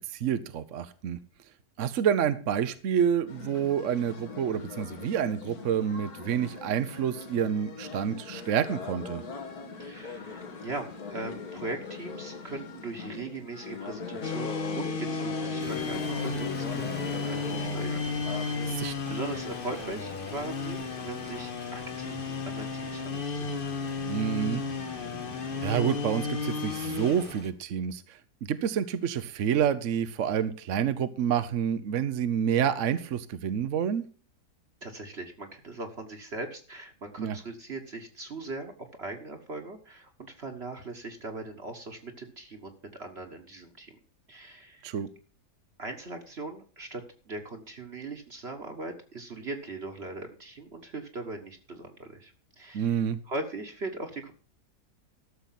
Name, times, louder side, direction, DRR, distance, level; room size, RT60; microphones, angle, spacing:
voice 1, 0.1-1.2 1.8-9.2 18.7-18.9 24.1-24.6 25.6-28.2 28.5-34.1 37.2-37.4 44.8-45.1 52.7-53.2, right 8 dB, 60° right, 11 dB, 1.0 m, -28 dB
sound 1, 3.3-18.7, left 4 dB, 65° left, 2.1 m, -41 dB
voice 2, 9.8-18.8 19.1-23.5 34.8-44.0 44.3-44.9 45.8-53.0 53.2-54.3, right 2 dB, 40° right, 4 dB, 1.5 m, -40 dB
sound 2, 14.2-27.4, left 4 dB, 40° left, 1.0 m, -33 dB
sound 3, 15.6-27.5, left 1 dB, 10° left, 0.5 m, -46 dB
13.0 x 6.8 x 5.8 m, 0.39 s
omnidirectional pair, 1.7 m